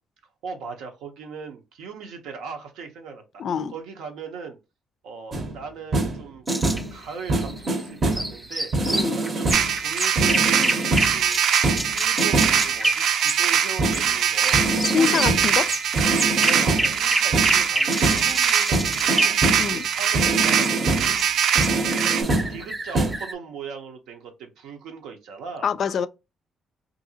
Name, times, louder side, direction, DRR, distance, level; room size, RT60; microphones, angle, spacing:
voice 1, 0.4-4.6 5.0-6.5 6.9-8.7 9.1-11.4 11.9-15.2 16.4-19.4 19.7-21.2 22.1-25.7, right 5 dB, 90° right, 0.7 m, -38 dB
voice 2, 3.4-3.7 8.9-9.2 14.9-15.7 19.6-19.9 25.6-26.1, left 7 dB, 60° left, 0.3 m, -25 dB
sound 1, 5.3-5.6 5.9-6.2 6.5-7.0 7.3-8.3 8.7-9.8 10.2-11.2 11.6-12.7 13.8-14.1 14.5-15.5 15.9-17.0 17.3-18.3 18.7-19.8 20.1-21.2 21.6-22.6 22.9-23.2, right 2 dB, 50° right, 0.7 m, -25 dB
sound 2, 6.5-14.0 14.3-23.3, right 1 dB, 10° right, 0.4 m, -30 dB
sound 3, 9.5-22.2, right 8 dB, 75° right, 0.4 m, -23 dB
2.7 x 2.6 x 2.7 m
cardioid pair, 90°, 0 cm